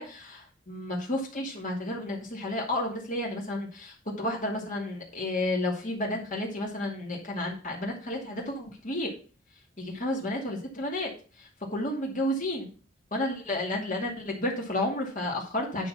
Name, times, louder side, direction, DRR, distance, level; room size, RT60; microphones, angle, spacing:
voice 1, 0.0-9.1 9.8-11.1 11.4-12.7 13.1-15.9, left 1 dB, 45° left, -1 dB, 2.3 m, -31 dB
9.6 x 4.3 x 6.1 m, 0.37 s
head